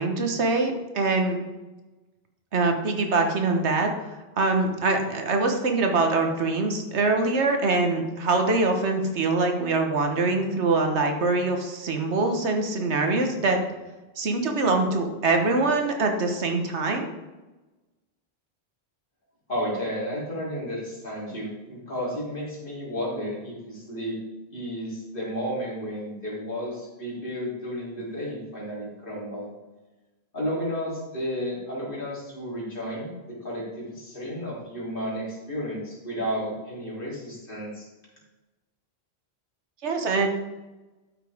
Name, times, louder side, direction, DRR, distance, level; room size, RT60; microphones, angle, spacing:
voice 1, 0.0-1.4 2.5-3.9 4.4-13.6 14.2-17.1 39.8-40.3, right 3 dB, 90° right, 4 dB, 1.5 m, -24 dB
voice 2, 19.5-24.1 24.5-29.5 30.3-33.1 33.4-37.9, equal, 50° left, -6 dB, 3.5 m, -32 dB
12.5 x 6.0 x 3.5 m, 1.1 s
omnidirectional pair, 1.1 m